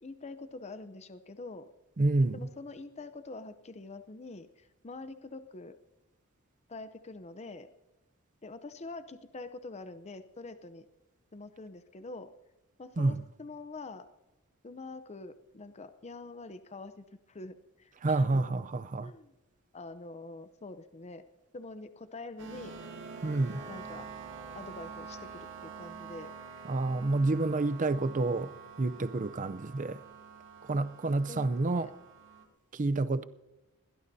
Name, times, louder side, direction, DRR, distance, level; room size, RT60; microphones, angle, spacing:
voice 1, 0.0-1.7 2.3-5.7 6.7-7.7 8.4-10.9 11.3-12.3 12.8-14.1 14.6-18.7 19.0-19.3 19.7-21.2 21.5-22.7 23.7-24.1 24.5-26.3 31.3-31.9, left 3 dB, 30° left, 0.6 m, -45 dB
voice 2, 2.0-2.3 13.0-13.2 18.0-19.1 23.2-23.6 26.6-28.5 28.8-30.0 30.7-31.9 32.7-33.2, right 2 dB, 35° right, 0.5 m, -28 dB
sound 1, 22.4-32.4, right 5 dB, 60° right, 2.3 m, -46 dB
22.0 x 17.0 x 2.7 m
head